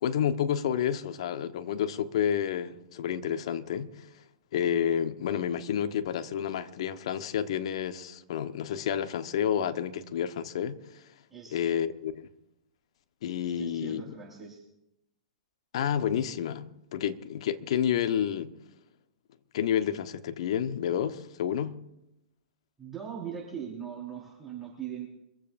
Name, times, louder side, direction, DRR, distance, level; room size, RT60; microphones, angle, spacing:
voice 1, 0.0-4.1 4.5-11.0 11.5-12.3 13.2-14.0 15.7-18.5 19.5-21.8, left 9 dB, 55° left, 1.2 m, -30 dB
voice 2, 11.3-11.6 13.4-14.6 22.8-25.0, right 8 dB, 5° right, 4.8 m, -40 dB
25.0 x 15.0 x 2.7 m
figure-of-eight pair, 115°, 4 cm